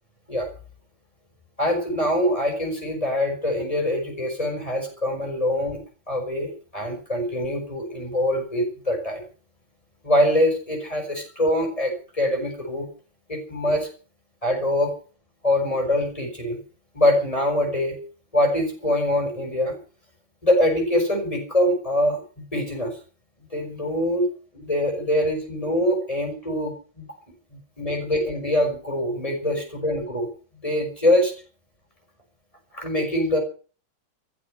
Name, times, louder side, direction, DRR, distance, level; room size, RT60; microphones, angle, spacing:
voice 1, 1.6-5.8 6.1-9.2 10.0-12.9 13.3-13.9 14.4-14.9 15.4-16.6 16.9-18.0 18.3-19.8 20.4-23.0 23.5-24.3 24.5-27.1 27.5-30.3 30.6-31.3 32.7-33.4, left 1 dB, 15° left, 3 dB, 6.1 m, -24 dB
14.5 x 13.5 x 6.6 m, 0.40 s
omnidirectional pair, 2.1 m